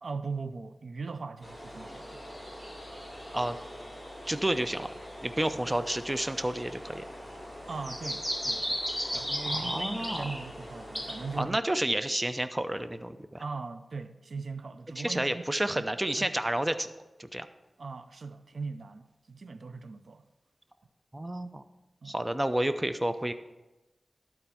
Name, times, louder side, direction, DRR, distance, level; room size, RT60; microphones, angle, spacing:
voice 1, 0.0-2.3 7.7-8.8 9.1-11.6 13.4-15.3 15.8-15.9 16.2-16.3 17.8-20.3 22.0-22.1, right 4 dB, 80° right, 0.4 m, -39 dB
sound 1, 1.4-11.4, equal, 5° right, 3.5 m, -37 dB
voice 2, 4.3-4.9 5.2-7.0 9.4-10.2 11.3-13.4 15.0-16.9 17.2-17.5 21.1-21.6 22.0-23.3, right 1 dB, 20° right, 0.5 m, -30 dB
12.0 x 4.5 x 5.8 m
wide cardioid pair, 65°, 0 cm